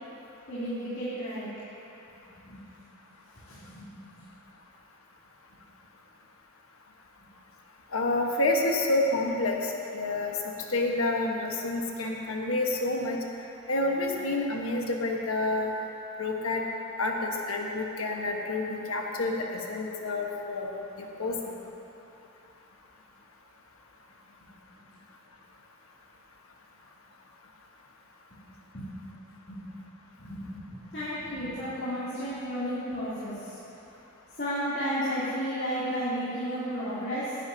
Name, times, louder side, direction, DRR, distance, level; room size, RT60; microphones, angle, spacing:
voice 1, 0.5-1.5 2.4-2.6 3.4-3.9 4.2-4.3 28.7-28.9 29.5-29.7 30.2-33.6 34.4-37.4, equal, 50° left, -12 dB, 3.1 m, -33 dB
voice 2, 7.9-10.3 10.7-13.2 13.7-15.7 16.2-16.6 17.0-20.7 21.0-21.3, left 2 dB, 85° left, 0 dB, 1.3 m, -28 dB
18.5 x 10.5 x 2.8 m, 2.9 s
head